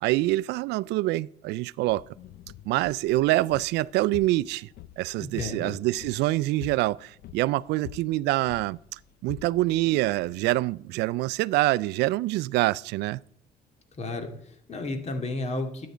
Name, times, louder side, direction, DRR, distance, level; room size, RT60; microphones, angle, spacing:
voice 1, 0.0-2.0 2.7-4.7 5.0-13.2, right 18 dB, 85° right, 0.4 m, -26 dB
sound 1, 1.9-10.5, left 12 dB, 65° left, 0.7 m, -47 dB
voice 2, 5.2-5.8 14.0-15.9, left 2 dB, 40° left, 2.2 m, -33 dB
12.5 x 9.4 x 5.0 m
cardioid pair, 110°, 17 cm